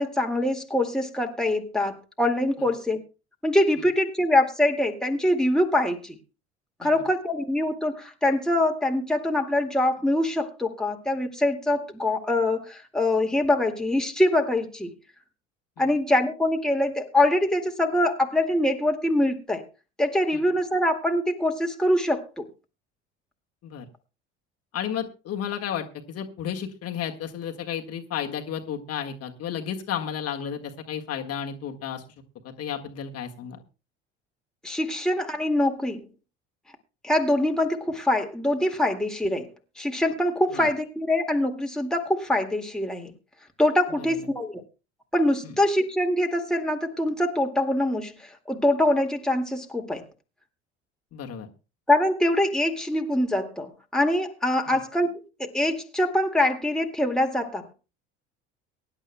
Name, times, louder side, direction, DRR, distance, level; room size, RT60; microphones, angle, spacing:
voice 1, 0.0-3.0 3.4-6.2 6.8-14.9 15.8-19.6 20.0-22.5 34.6-36.1 37.0-39.5 39.8-43.1 43.6-44.6 45.1-50.0 51.9-55.1 55.4-57.7, left 1 dB, ahead, 2.0 m, -24 dB
voice 2, 24.7-32.0 32.4-33.6 40.5-40.7 44.0-44.1 45.4-45.5 51.1-51.5 54.7-54.8, left 8 dB, 45° left, 1.7 m, -33 dB
23.5 x 11.0 x 2.2 m
figure-of-eight pair, 60°, 34 cm